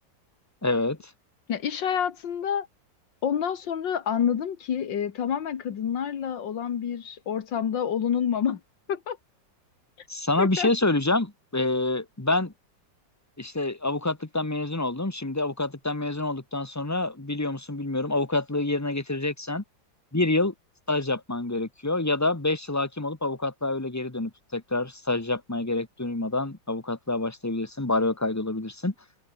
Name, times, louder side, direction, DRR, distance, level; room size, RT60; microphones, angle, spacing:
voice 1, 0.6-1.0 10.1-12.5 13.4-19.6 20.1-20.5 20.9-28.9, left 2 dB, 10° left, 1.6 m, -27 dB
voice 2, 1.5-2.7 3.2-8.6 8.9-9.2 10.4-10.7, left 8 dB, 85° left, 2.2 m, -28 dB
omnidirectional pair, 2.0 m